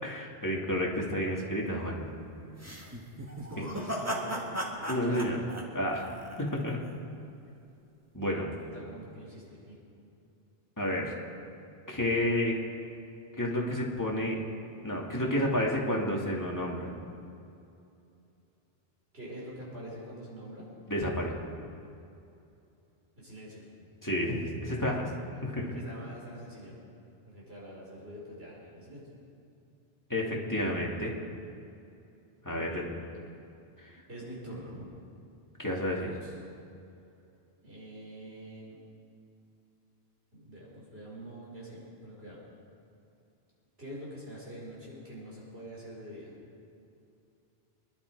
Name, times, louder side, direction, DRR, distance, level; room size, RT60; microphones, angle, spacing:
voice 1, 0.0-2.1 4.9-5.4 5.7-6.8 8.1-8.5 10.8-11.1 11.9-12.6 13.4-14.4 14.8-16.9 20.9-21.3 24.0-25.1 25.4-25.7 30.1-31.1 32.4-32.8 33.8-33.9 35.6-36.1, left 1 dB, 20° left, -3 dB, 2.4 m, -30 dB
sound 1, 2.6-6.7, equal, 15° right, 1.6 m, -36 dB
voice 2, 3.5-5.2 8.6-9.8 19.1-20.7 23.2-23.6 25.7-26.8 27.3-29.1 32.5-32.9 34.1-34.9 36.0-36.3 37.6-38.8 40.3-42.4 43.8-46.3, right 1 dB, 75° right, -5 dB, 5.4 m, -45 dB
25.5 x 11.0 x 4.8 m, 2.6 s
omnidirectional pair, 1.1 m